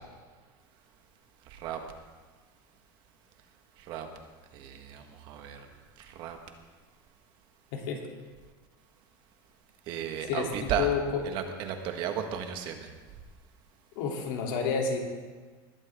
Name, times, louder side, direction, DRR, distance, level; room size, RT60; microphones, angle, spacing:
voice 1, 1.5-1.8 3.9-4.1 4.5-5.7 6.0-6.4 9.9-10.9 11.3-12.9, right 9 dB, 45° right, 5 dB, 1.4 m, -34 dB
voice 2, 10.2-11.2 14.0-15.0, left 6 dB, 70° left, 0 dB, 2.9 m, -30 dB
20.0 x 12.5 x 3.6 m, 1.4 s
cardioid pair, 170°, 11 cm